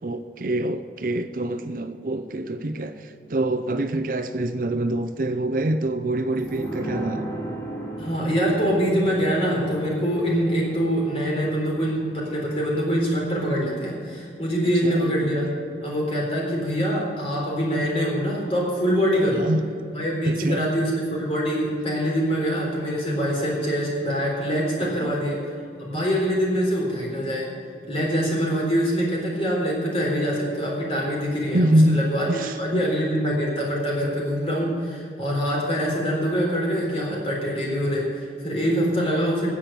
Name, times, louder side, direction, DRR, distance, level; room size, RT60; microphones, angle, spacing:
voice 1, 0.0-7.2 14.8-15.0 19.4-19.6 20.2-20.7 24.8-25.1 31.5-32.9, right 1 dB, 50° right, 8 dB, 0.6 m, -25 dB
sound 1, 6.4-15.7 16.0-16.1, right 1 dB, 15° left, 2.0 m, -37 dB
voice 2, 8.0-15.5 15.8-19.5 19.9-25.4 25.8-27.5 27.9-32.3 32.5-39.5, equal, 35° left, -2 dB, 3.8 m, -24 dB
10.0 x 8.5 x 8.7 m, 2.5 s
head